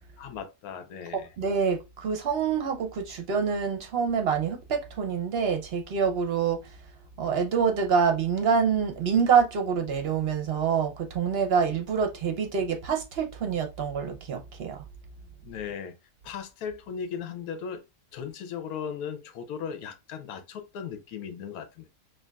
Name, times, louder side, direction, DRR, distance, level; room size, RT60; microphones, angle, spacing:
voice 1, 0.2-1.3 15.4-16.0 16.2-17.8 18.1-21.9, left 7 dB, 75° left, 1.1 m, -37 dB
voice 2, 1.1-6.7 7.2-14.8, right 6 dB, 55° right, 0.8 m, -26 dB
6.1 x 2.2 x 2.3 m
omnidirectional pair, 1.6 m